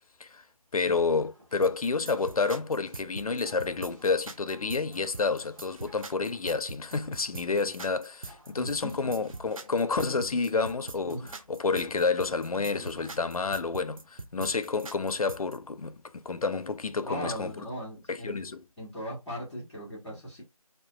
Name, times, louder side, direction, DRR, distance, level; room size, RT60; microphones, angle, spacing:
voice 1, 0.7-11.2 11.5-17.5 18.1-18.6, left 4 dB, 75° left, 0.4 m, -29 dB
sound 1, 1.2-13.3, equal, 30° right, 1.6 m, -57 dB
sound 2, 1.6-15.6, right 3 dB, 65° right, 0.4 m, -43 dB
voice 2, 8.5-9.2 10.2-10.4 11.0-11.3 12.7-13.1 17.0-18.4 18.8-20.4, equal, ahead, 0.6 m, -39 dB
2.7 x 2.3 x 2.3 m
figure-of-eight pair, 175°, 19 cm